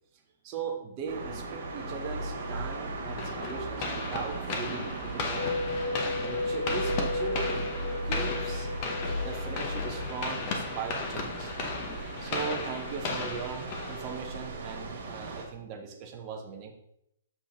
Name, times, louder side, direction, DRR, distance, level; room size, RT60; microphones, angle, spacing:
voice 1, 0.4-5.6 6.2-7.7 8.0-8.7 9.2-11.5 12.2-16.7, right 5 dB, 20° right, 2 dB, 0.7 m, -39 dB
sound 1, 1.1-15.4, right 2 dB, 55° right, 1.8 m, -37 dB
sound 2, 3.2-14.5, left 3 dB, 25° left, 0.8 m, -36 dB
sound 3, 5.3-10.5, left 2 dB, 65° left, 1.1 m, -34 dB
6.9 x 6.1 x 2.9 m, 0.77 s
hypercardioid pair, 175°, 0 cm